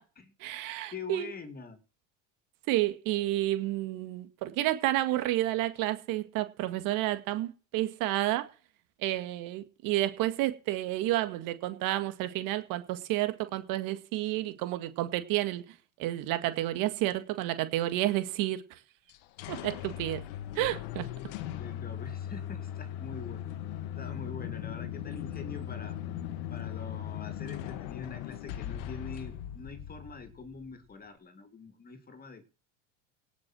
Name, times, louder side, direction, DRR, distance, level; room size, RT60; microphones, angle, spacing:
voice 1, 0.4-1.3 2.7-8.5 9.0-15.6 16.0-18.6 19.5-20.2 20.6-21.1, right 15 dB, 65° right, 2.0 m, -30 dB
voice 2, 0.9-1.8 21.6-23.5 24.0-26.0 26.5-32.4, left 4 dB, 25° left, 2.8 m, -44 dB
sound 1, 19.1-30.7, left 11 dB, 75° left, 1.7 m, -39 dB
18.0 x 6.3 x 6.2 m
supercardioid pair, 110°, 36 cm